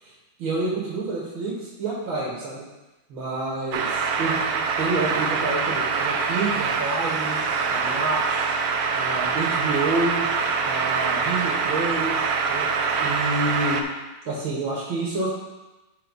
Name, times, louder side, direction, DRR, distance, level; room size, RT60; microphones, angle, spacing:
voice 1, 0.4-2.6 3.1-7.4 7.7-8.4 8.9-10.3 10.6-12.7 13.0-13.8 14.3-15.3, right 3 dB, 85° right, -4 dB, 2.3 m, -28 dB
sound 1, 3.7-13.8, right 5 dB, 65° right, 1.0 m, -24 dB
11.0 x 4.7 x 4.0 m, 1.1 s
omnidirectional pair, 2.1 m